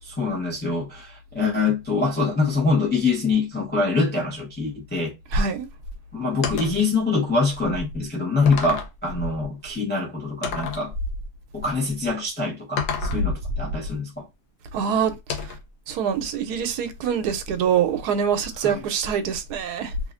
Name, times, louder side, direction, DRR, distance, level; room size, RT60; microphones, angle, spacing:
voice 1, 0.0-5.1 6.1-10.9 11.5-14.3 18.6-18.8, left 3 dB, 10° left, 0.4 m, -24 dB
voice 2, 5.3-5.7 14.7-15.5 15.9-19.9, right 7 dB, 80° right, 1.1 m, -24 dB
sound 1, 6.4-6.9 7.7-7.8 8.5-9.0 10.4-10.9 12.8-13.3 15.3-15.7, left 6 dB, 80° left, 1.3 m, -29 dB
2.9 x 2.4 x 2.4 m
omnidirectional pair, 1.7 m